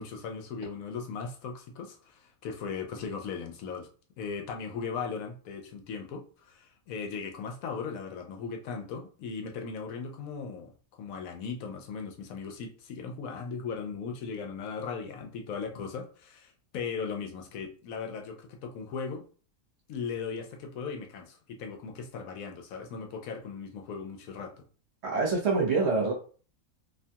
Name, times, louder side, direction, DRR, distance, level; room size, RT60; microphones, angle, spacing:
voice 1, 0.0-3.9 4.2-10.7 11.0-19.2 19.9-24.6, left 5 dB, 80° left, 1.0 m, -38 dB
voice 2, 25.0-26.1, right 4 dB, 55° right, 1.1 m, -25 dB
2.7 x 2.3 x 2.7 m
omnidirectional pair, 1.4 m